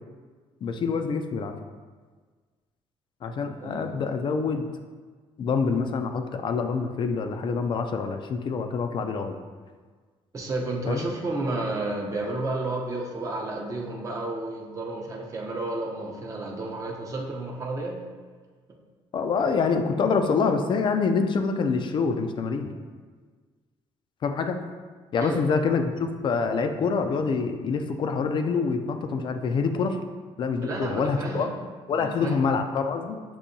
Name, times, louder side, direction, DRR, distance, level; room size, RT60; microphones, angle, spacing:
voice 1, 0.6-1.5 3.2-4.7 5.4-9.4 10.9-11.1 19.1-22.7 24.2-24.6 25.1-30.0 30.4-31.5 31.9-33.2, left 5 dB, 45° left, 6 dB, 0.4 m, -26 dB
voice 2, 3.6-3.9 10.3-18.0 25.2-25.4 30.6-31.5 31.9-32.4, right 2 dB, 30° right, -1 dB, 0.7 m, -31 dB
7.0 x 2.7 x 2.6 m, 1.5 s
cardioid pair, 130°, 12 cm